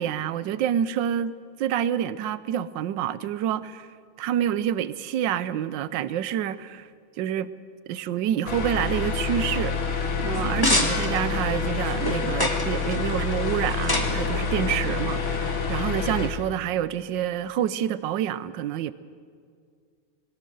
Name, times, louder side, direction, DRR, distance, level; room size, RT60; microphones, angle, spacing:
voice 1, 0.0-1.3 1.6-3.9 4.2-6.9 7.2-7.5 7.9-9.8 10.2-18.9, right 10 dB, 65° right, 1.3 m, -27 dB
sound 1, 8.5-16.3, left 4 dB, 70° left, 2.7 m, -27 dB
sound 2, 10.3-15.8, left 1 dB, 10° left, 1.3 m, -30 dB
22.0 x 17.5 x 7.8 m
omnidirectional pair, 2.4 m